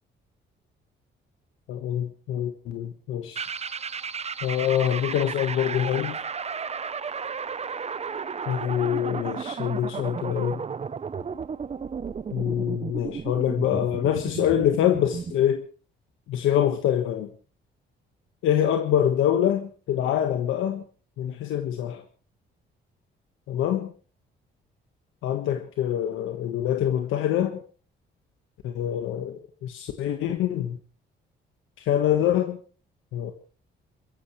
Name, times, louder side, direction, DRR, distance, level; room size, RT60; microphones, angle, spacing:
voice 1, 1.7-3.4 4.4-6.2 8.5-10.6 12.3-15.6 16.3-17.3 18.4-20.8 21.2-22.0 23.5-23.9 25.2-27.6 28.6-30.8 31.8-32.6 33.1-33.3, left 10 dB, 90° left, 6 dB, 1.5 m, -25 dB
sound 1, 3.3-15.4, right 6 dB, 30° right, 0.8 m, -34 dB
28.5 x 14.5 x 3.2 m, 0.37 s
cardioid pair, 90°, 20 cm